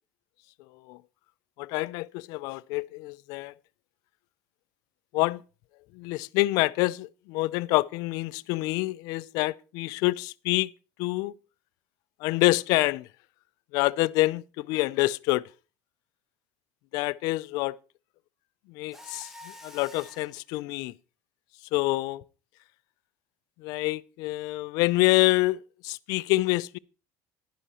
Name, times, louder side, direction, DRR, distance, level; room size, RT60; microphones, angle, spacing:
voice 1, 1.6-3.5 5.1-5.4 5.9-10.7 11.0-11.3 12.2-13.1 13.7-15.5 16.9-17.8 18.7-19.3 19.6-20.9 21.7-22.2 23.6-26.8, left 20 dB, 55° left, 0.4 m, -26 dB
Mechanisms, 18.9-20.4, left 1 dB, 5° right, 1.1 m, -47 dB
11.0 x 10.5 x 4.2 m
cardioid pair, 175°, 8 cm